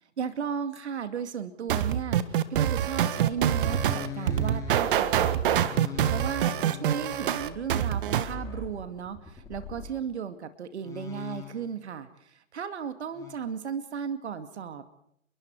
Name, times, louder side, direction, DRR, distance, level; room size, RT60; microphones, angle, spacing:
voice 1, 0.2-14.9, right 7 dB, 60° right, 10 dB, 2.5 m, -35 dB
sound 1, 1.7-8.3, right 10 dB, 40° right, 1.6 m, -25 dB
sound 2, 3.2-10.0 10.8-11.8 13.1-13.3, left 6 dB, 10° left, 3.3 m, -41 dB
30.0 x 22.5 x 4.8 m, 0.70 s
figure-of-eight pair, 130°, 39 cm